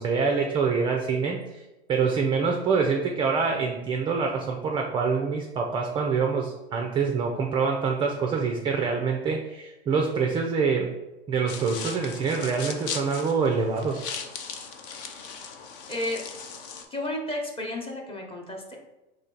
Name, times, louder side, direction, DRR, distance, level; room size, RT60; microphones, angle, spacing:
voice 1, 0.0-1.6 1.9-10.9 11.3-14.1, right 5 dB, 15° right, 2 dB, 0.3 m, -25 dB
sound 1, 11.5-16.8, left 6 dB, 55° left, 0.7 m, -38 dB
voice 2, 15.9-16.2 16.9-18.8, left 1 dB, 15° left, 1 dB, 0.9 m, -32 dB
4.3 x 3.2 x 3.8 m, 1.0 s
hypercardioid pair, 100°, 32 cm